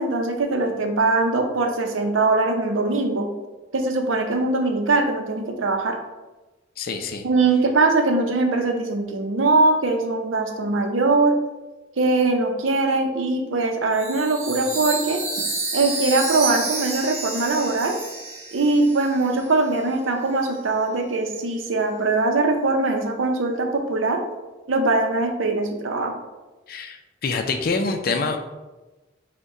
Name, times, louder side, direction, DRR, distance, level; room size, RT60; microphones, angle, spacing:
voice 1, 0.0-3.3 3.7-6.0 7.2-11.3 12.0-15.2 15.7-17.9 18.5-24.2 24.7-26.1, right 3 dB, 85° right, 4 dB, 0.6 m, -21 dB
voice 2, 6.8-7.2 26.7-28.4, left 4 dB, 50° left, 6 dB, 0.4 m, -26 dB
Chime, 13.9-19.5, right 3 dB, 35° right, 0.8 m, -30 dB
5.2 x 2.2 x 3.7 m, 1.1 s
head